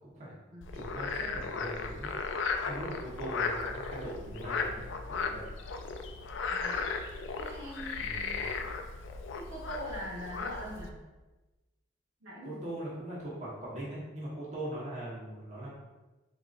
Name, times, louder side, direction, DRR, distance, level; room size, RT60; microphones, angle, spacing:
voice 1, 0.0-0.3 0.7-2.3 2.6-5.4 8.0-8.4 12.4-15.7, right 1 dB, 35° right, -7 dB, 1.2 m, -41 dB
Frog, 0.6-10.9, left 4 dB, 70° left, 0.4 m, -36 dB
voice 2, 6.5-6.8 7.3-8.0 8.6-8.7 9.4-10.9 12.2-12.6, equal, 70° right, -6 dB, 1.2 m, -42 dB
4.6 x 3.9 x 2.5 m, 1.1 s
head